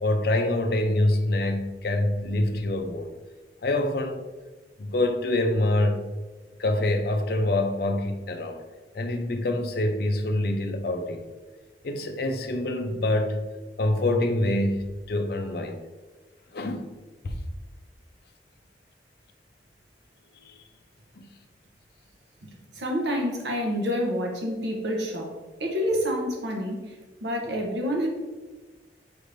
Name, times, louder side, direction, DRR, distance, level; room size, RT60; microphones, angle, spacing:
voice 1, 0.0-3.1 3.6-4.2 4.8-6.0 6.6-8.6 8.9-11.3 11.8-13.4 13.8-15.8 16.5-17.0 17.2-17.4 20.4-20.6 21.2-21.3, left 1 dB, 60° left, 5 dB, 0.5 m, -25 dB
voice 2, 22.7-25.3 25.6-28.1, equal, 85° right, 1 dB, 0.9 m, -28 dB
6.1 x 3.3 x 2.6 m, 1.2 s
head